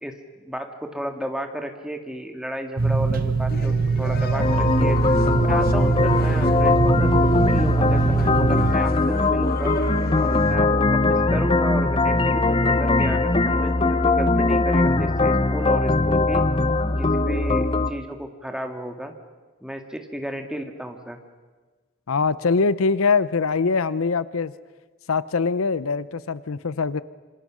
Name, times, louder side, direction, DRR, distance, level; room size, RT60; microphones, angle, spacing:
voice 1, 0.0-5.0 5.4-9.7 10.2-16.4 17.0-19.1 19.6-21.2, equal, 5° right, 4 dB, 1.9 m, -33 dB
sound 1, 2.8-8.7, right 4 dB, 45° right, 1.2 m, -22 dB
sound 2, 3.5-10.5, left 3 dB, 45° left, 1.0 m, -35 dB
sound 3, 4.4-17.9, left 2 dB, 25° left, 0.8 m, -20 dB
voice 2, 22.1-24.5 25.1-27.0, left 4 dB, 80° left, 17 dB, 0.7 m, -23 dB
27.0 x 26.5 x 6.3 m, 1.3 s
head